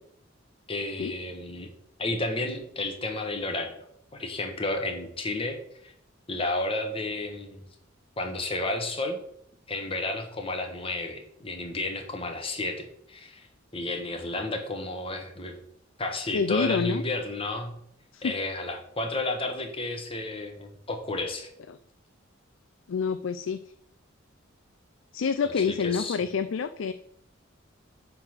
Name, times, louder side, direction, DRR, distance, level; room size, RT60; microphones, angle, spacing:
voice 1, 0.7-1.7 2.0-3.8 4.1-5.6 5.8-5.9 6.3-7.6 8.2-9.2 9.7-13.5 13.7-15.6 16.0-17.7 18.2-21.5 25.6-26.2, left 2 dB, 30° left, 4 dB, 1.3 m, -32 dB
voice 2, 16.3-17.0 18.1-18.3 21.7-21.8 22.9-23.6 25.1-26.9, left 6 dB, 75° left, 9 dB, 0.4 m, -27 dB
9.2 x 3.9 x 6.3 m, 0.70 s
head